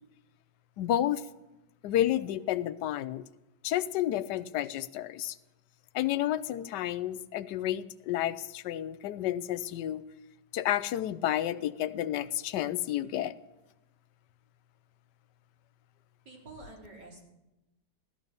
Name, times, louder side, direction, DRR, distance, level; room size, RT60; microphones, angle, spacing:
voice 1, 0.8-1.2 1.8-3.2 3.6-5.4 5.9-10.0 10.5-13.3, left 12 dB, 80° left, 1.3 m, -30 dB
voice 2, 16.2-17.2, right 2 dB, 75° right, 4.5 m, -48 dB
16.0 x 13.5 x 5.3 m
omnidirectional pair, 1.8 m